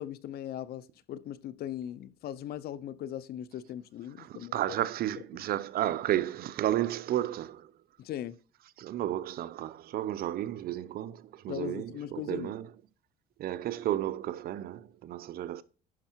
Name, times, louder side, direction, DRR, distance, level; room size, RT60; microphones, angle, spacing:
voice 1, 0.0-4.5 8.0-8.3 11.5-12.5, left 11 dB, 70° left, 0.8 m, -39 dB
voice 2, 4.2-7.7 8.8-12.7 13.4-15.6, right 13 dB, 65° right, 0.7 m, -32 dB
11.0 x 5.5 x 4.5 m
cardioid pair, 110°, 17 cm